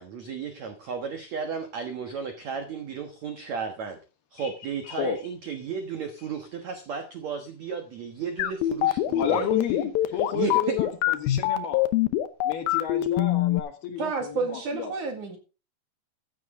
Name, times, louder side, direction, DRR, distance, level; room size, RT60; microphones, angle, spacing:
voice 1, 0.0-4.0 4.3-9.5 10.3-10.8, right 6 dB, 80° right, 6 dB, 1.6 m, -34 dB
voice 2, 4.8-5.2 9.1-11.8 12.4-14.9, left 8 dB, 65° left, 6 dB, 2.9 m, -31 dB
sound 1, 8.4-13.6, left 14 dB, 90° left, 2.1 m, -23 dB
voice 3, 14.0-15.4, right 4 dB, 50° right, 4 dB, 2.8 m, -30 dB
15.0 x 10.5 x 3.7 m, 0.32 s
omnidirectional pair, 5.4 m